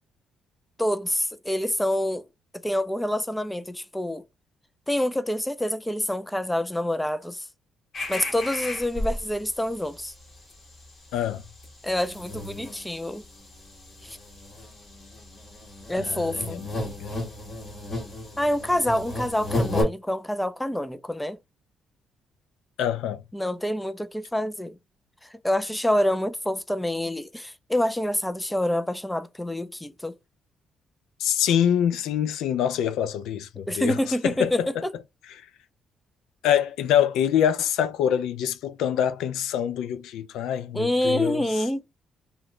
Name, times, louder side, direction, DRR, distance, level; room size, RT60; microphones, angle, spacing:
voice 1, 0.8-2.2 2.6-4.2 4.9-7.5 8.1-10.1 11.8-13.2 14.0-14.2 15.9-16.6 18.4-21.4 23.3-24.8 25.2-30.1 33.7-34.9 40.7-41.8, left 1 dB, 5° left, 0.3 m, -27 dB
sound 1, 7.9-9.5 9.9-10.1 10.4-19.8, left 1 dB, 45° left, 1.7 m, -34 dB
voice 2, 11.1-11.4 16.0-17.3 22.8-23.2 31.2-34.0 34.2-34.7 36.4-41.5, left 9 dB, 85° left, 0.3 m, -25 dB
2.9 x 2.2 x 3.6 m
cardioid pair, 90°, 0 cm